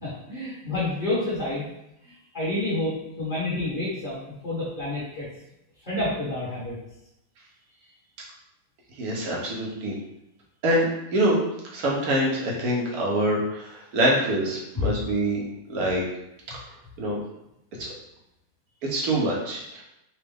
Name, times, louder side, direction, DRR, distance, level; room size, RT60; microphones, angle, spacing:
voice 1, 0.0-1.6 2.3-4.2 4.4-5.3 5.8-6.7 14.8-14.9, left 2 dB, 25° left, -10 dB, 1.2 m, -28 dB
voice 2, 9.0-9.9 10.6-11.4 11.7-15.4 15.7-16.0 17.0-17.2 17.8-17.9 18.8-19.8, right 1 dB, 65° right, -3 dB, 1.0 m, -25 dB
4.2 x 2.3 x 3.4 m, 0.84 s
omnidirectional pair, 2.4 m